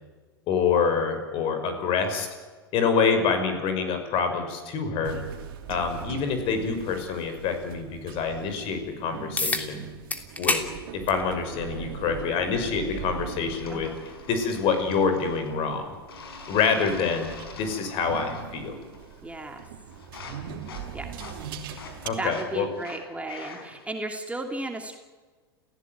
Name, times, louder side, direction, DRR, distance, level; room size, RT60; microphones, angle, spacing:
voice 1, 0.5-2.3 2.7-5.2 5.7-9.9 10.4-10.6 10.9-13.9 14.3-16.0 16.5-18.7 22.0-22.7, left 5 dB, 45° left, 8 dB, 6.1 m, -26 dB
sound 1, 5.0-22.1, right 8 dB, 65° right, 3.1 m, -41 dB
sound 2, 9.4-9.7 10.1-10.7 11.1-11.2 12.3-12.4 17.3-17.4, left 2 dB, 10° left, 3.2 m, -26 dB
sound 3, 13.5-15.6 16.1-18.5 18.8-19.3 19.6-23.9, left 5 dB, 75° left, 5.4 m, -45 dB
voice 2, 19.2-19.7 20.9-21.2 22.2-25.0, right 2 dB, 10° right, 4 dB, 2.7 m, -34 dB
30.0 x 16.5 x 9.4 m, 1.4 s
hypercardioid pair, 95°, 13 cm